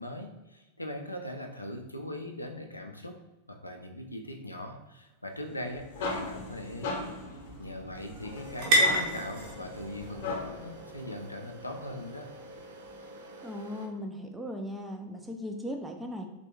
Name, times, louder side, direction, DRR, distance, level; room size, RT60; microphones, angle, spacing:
voice 1, 0.0-3.2 3.5-7.0 7.6-12.3, left 1 dB, 85° left, 3 dB, 0.4 m, -40 dB
sound 1, 5.1-12.9, right 1 dB, 45° right, 0.9 m, -34 dB
sound 2, 5.5-10.7, left 3 dB, 50° left, 0.8 m, -38 dB
sound 3, 8.3-13.9, right 1 dB, 65° right, 0.4 m, -48 dB
voice 2, 13.4-16.3, equal, 5° right, 3 dB, 0.4 m, -38 dB
3.3 x 2.2 x 2.9 m, 1.1 s
figure-of-eight pair, 90°, 0 cm